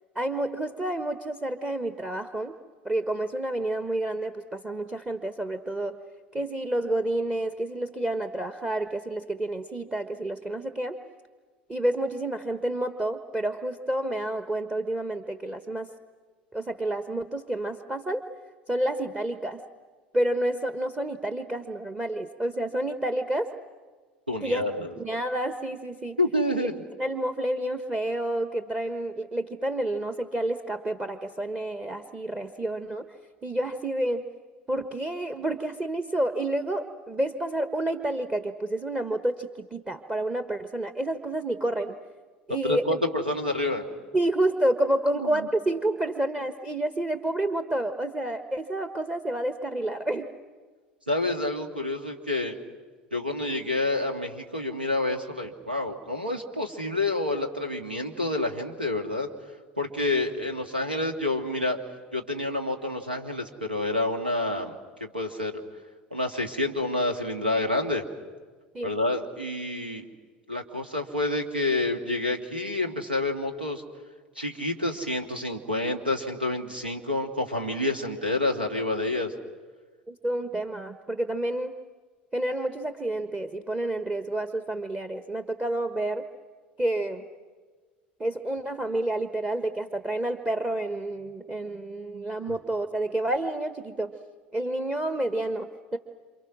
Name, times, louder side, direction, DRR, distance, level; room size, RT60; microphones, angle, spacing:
voice 1, 0.1-2.5 2.8-6.0 6.3-11.0 11.7-15.9 16.5-18.2 18.7-19.6 20.1-23.5 24.4-24.6 25.0-26.2 26.6-26.7 27.0-33.0 33.4-34.2 34.7-42.0 42.5-43.0 44.1-50.3 68.7-68.9 80.1-81.7 82.3-86.3 86.8-87.3 88.2-94.1 94.5-96.0, right 1 dB, 15° right, 9 dB, 1.3 m, -29 dB
voice 2, 24.3-24.9 26.2-26.7 42.6-43.9 45.2-45.5 51.1-52.6 53.1-59.3 59.8-61.8 62.1-64.8 65.0-65.6 66.1-68.0 68.8-70.0 70.5-73.8 74.4-79.3 92.5-92.6, left 2 dB, 90° right, 5 dB, 2.0 m, -28 dB
28.0 x 27.5 x 6.3 m, 1.4 s
figure-of-eight pair, 70°, 5 cm